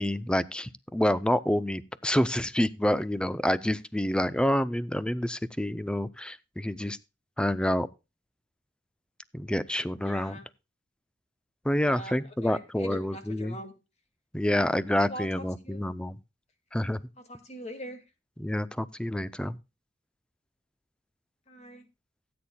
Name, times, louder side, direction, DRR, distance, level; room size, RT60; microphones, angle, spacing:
voice 1, 0.0-7.0 7.4-7.9 9.3-10.4 11.6-13.6 14.3-16.2 16.7-17.0 18.4-19.6, left 1 dB, 5° left, 15 dB, 0.5 m, -28 dB
voice 2, 10.0-10.4 11.8-13.7 14.5-14.6 15.0-15.3 15.6-15.8 17.3-18.0 21.5-21.8, equal, 35° left, 7 dB, 2.1 m, -42 dB
17.0 x 8.7 x 2.3 m, 0.27 s
head